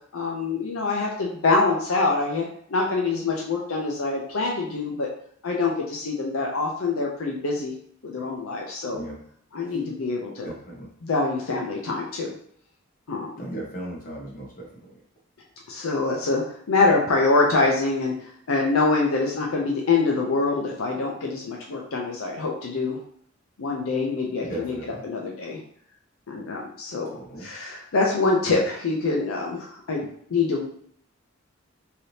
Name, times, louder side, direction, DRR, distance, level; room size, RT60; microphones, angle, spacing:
voice 1, 0.1-5.1 5.4-7.7 8.0-9.0 9.5-10.5 11.0-12.3 13.1-13.3 15.7-23.0 23.6-24.7 25.0-25.6 26.3-30.7, left 3 dB, 80° left, -1 dB, 0.6 m, -25 dB
voice 2, 10.4-10.9 13.4-15.0 24.4-25.0 27.1-27.5, right 1 dB, 40° left, -3 dB, 0.9 m, -36 dB
3.3 x 2.7 x 2.7 m, 0.63 s
head